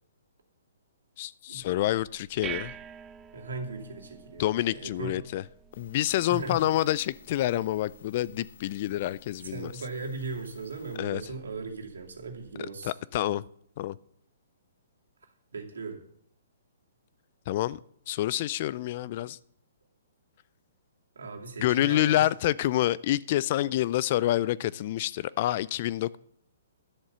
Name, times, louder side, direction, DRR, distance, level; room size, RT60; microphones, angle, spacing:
voice 1, 1.2-2.7 4.4-5.4 5.8-9.7 11.0-11.2 12.8-13.4 13.8-14.0 17.5-17.8 18.1-19.4 21.6-26.2, left 14 dB, 40° left, 0.4 m, -27 dB
sound 1, 2.0-12.6, right 9 dB, 15° right, 0.5 m, -48 dB
voice 2, 3.3-4.5 4.7-5.1 6.3-6.7 9.4-12.9 15.5-16.0 21.2-22.3 23.6-23.7, right 3 dB, 90° right, 2.5 m, -38 dB
sound 2, 5.7-11.0, left 7 dB, 70° left, 1.7 m, -57 dB
11.0 x 7.3 x 6.7 m
hypercardioid pair, 155°, 0 cm